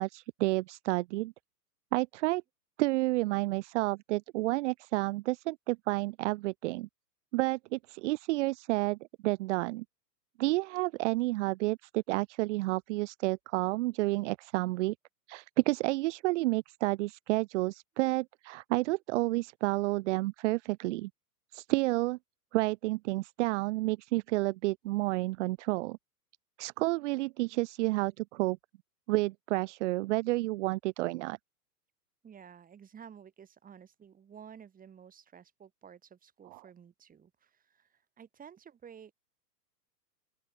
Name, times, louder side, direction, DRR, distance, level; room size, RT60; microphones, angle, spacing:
voice 1, 0.0-1.3 1.9-2.4 2.8-6.9 7.3-9.0 9.2-9.8 10.4-14.9 15.3-21.1 21.5-22.2 22.5-26.0 26.6-28.6 29.1-31.4 36.5-36.6, right 20 dB, 45° right, 1.2 m, -30 dB
voice 2, 32.2-39.1, right 8 dB, 15° right, 3.9 m, -53 dB
open air
hypercardioid pair, 125°, 48 cm